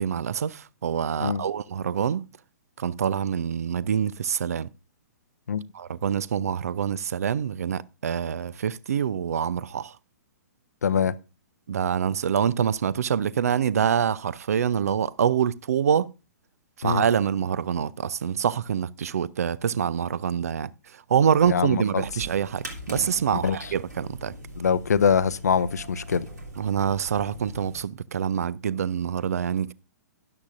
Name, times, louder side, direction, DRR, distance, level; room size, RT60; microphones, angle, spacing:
voice 1, 0.0-2.2 2.8-4.7 5.7-10.0 11.7-16.1 16.8-24.3 26.6-29.7, right 8 dB, 60° right, 0.4 m, -26 dB
voice 2, 10.8-11.1 16.8-17.0 21.5-22.0 23.4-23.6 24.6-26.3, left 6 dB, 65° left, 0.5 m, -23 dB
sound 1, 22.0-27.9, right 1 dB, 75° right, 2.8 m, -41 dB
12.5 x 10.5 x 2.6 m
figure-of-eight pair, 115°, 9 cm